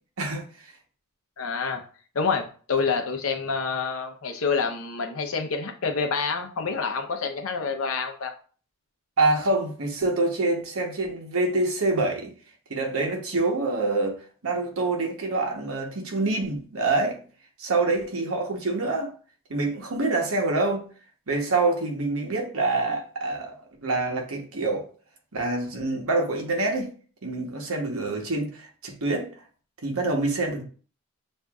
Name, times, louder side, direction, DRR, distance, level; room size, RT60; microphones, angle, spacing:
voice 1, 1.4-1.8 2.1-8.3, left 5 dB, 80° left, 0.7 m, -27 dB
voice 2, 9.2-12.3 12.7-17.2 17.6-19.1 19.5-20.9 21.3-24.9 25.3-26.9 27.2-29.3 29.8-30.6, right 2 dB, 80° right, 1.0 m, -26 dB
6.3 x 2.5 x 2.3 m
head